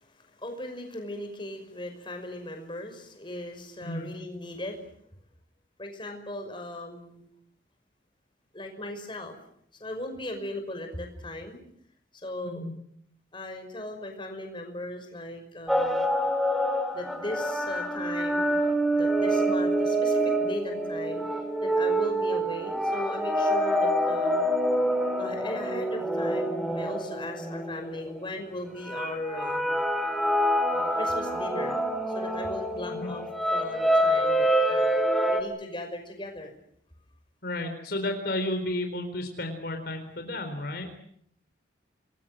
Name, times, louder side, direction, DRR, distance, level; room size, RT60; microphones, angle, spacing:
voice 1, 0.0-4.8 5.8-7.3 8.5-9.4 9.8-11.6 12.2-12.6 13.3-16.1 16.9-18.6 18.9-21.2 21.6-24.4 25.2-29.7 30.7-31.8 32.1-33.3 33.5-35.0 35.3-36.5, left 1 dB, 25° left, 4 dB, 5.8 m, -38 dB
voice 2, 3.8-4.1 12.4-12.7 32.9-33.1 37.4-40.9, left 1 dB, 55° left, 5 dB, 4.2 m, -32 dB
sound 1, 15.7-28.2 28.9-35.4, right 1 dB, ahead, 3.2 m, -26 dB
28.0 x 22.0 x 7.8 m, 0.69 s
head